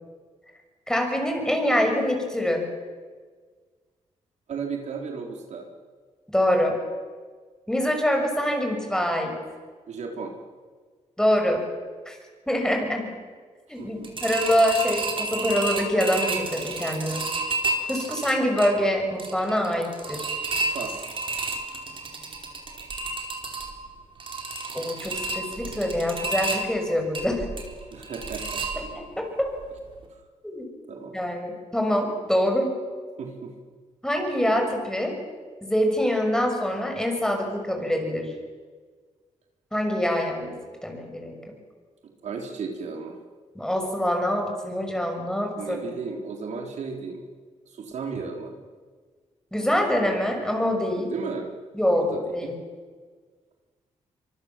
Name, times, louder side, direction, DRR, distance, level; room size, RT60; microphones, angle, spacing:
voice 1, 0.9-2.7 6.3-6.8 7.7-9.4 11.2-11.6 12.1-12.2 12.5-13.1 13.7-17.3 17.9-20.4 24.7-27.4 28.8-29.5 30.4-30.7 31.1-32.8 34.0-35.2 35.6-38.3 39.7-41.4 43.5-45.8 49.5-51.1 51.7-52.6, equal, 5° left, 2 dB, 6.5 m, -25 dB
voice 2, 4.5-5.7 9.9-10.3 13.8-14.1 20.6-21.0 27.9-28.8 30.9-31.2 33.2-33.5 42.0-43.2 45.6-47.2 47.7-48.6 51.0-51.5 52.0-52.5, right 5 dB, 70° right, 2 dB, 3.8 m, -35 dB
sound 1, 14.0-29.2 29.6-29.7 30.0-30.1, right 2 dB, 45° right, 4.2 m, -31 dB
25.0 x 24.5 x 7.5 m, 1.5 s
cardioid pair, 105°, 12 cm